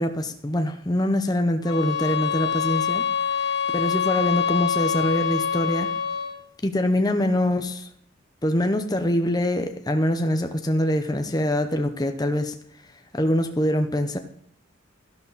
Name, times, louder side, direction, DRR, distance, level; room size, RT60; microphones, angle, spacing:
voice 1, 0.0-5.9 6.6-7.9 8.4-12.5 13.1-14.2, left 1 dB, 20° left, 6 dB, 0.8 m, -24 dB
sound 1, 1.7-6.4, left 8 dB, 60° left, 1.5 m, -25 dB
13.0 x 11.5 x 4.1 m, 0.64 s
head